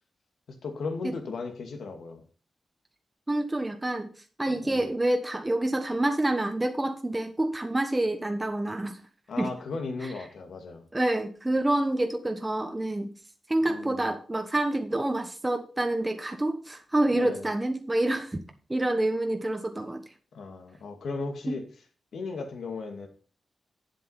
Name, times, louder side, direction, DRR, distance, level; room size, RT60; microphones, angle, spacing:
voice 1, 0.6-2.2 4.5-4.8 9.3-10.8 13.7-14.1 17.1-17.4 20.3-21.6 22.1-23.1, left 4 dB, 85° left, 4 dB, 2.4 m, -36 dB
voice 2, 3.3-4.1 4.4-9.0 9.4-9.5 10.0-10.1 10.9-13.1 13.5-18.4 18.7-20.0 21.5-21.6, right 1 dB, 15° right, 5 dB, 1.1 m, -27 dB
8.5 x 7.7 x 5.6 m, 0.40 s
wide cardioid pair, 130°, 0 cm